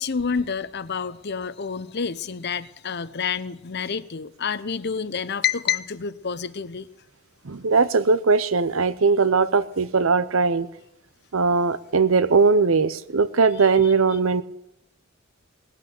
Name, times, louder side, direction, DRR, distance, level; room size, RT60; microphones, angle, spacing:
voice 1, 0.0-6.9 13.6-14.2, left 6 dB, 55° left, 0.7 m, -29 dB
voice 2, 7.4-10.7 11.3-14.4, right 4 dB, 85° right, 0.8 m, -20 dB
19.0 x 8.4 x 8.1 m
head